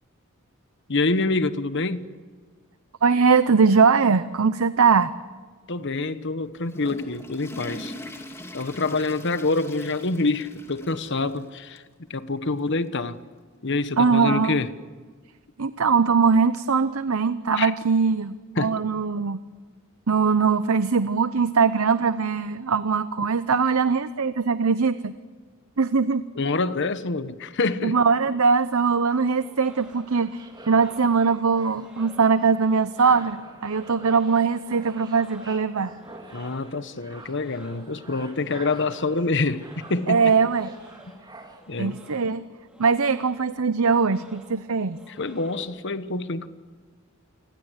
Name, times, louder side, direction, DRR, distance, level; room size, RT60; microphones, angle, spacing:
voice 1, 0.9-2.1 5.7-7.9 8.5-11.8 12.1-13.2 13.6-14.7 17.5-17.7 18.5-18.8 26.3-28.0 36.3-40.3 41.7-42.0 45.1-46.5, left 3 dB, 55° left, 12 dB, 1.2 m, -26 dB
voice 2, 3.0-5.1 14.0-14.6 15.6-19.4 20.1-25.1 25.8-26.2 27.8-35.9 40.1-40.7 41.8-42.4 42.8-45.0, right 5 dB, 75° right, 13 dB, 0.7 m, -21 dB
Water / Toilet flush, 6.4-11.4 11.8-11.9 12.6-12.7 14.0-14.1, left 1 dB, 10° left, 2.6 m, -41 dB
sound 1, 28.9-45.9, equal, 5° right, 3.9 m, -53 dB
sound 2, 29.6-41.6, right 2 dB, 20° right, 2.8 m, -46 dB
29.0 x 21.5 x 8.2 m, 1.5 s
head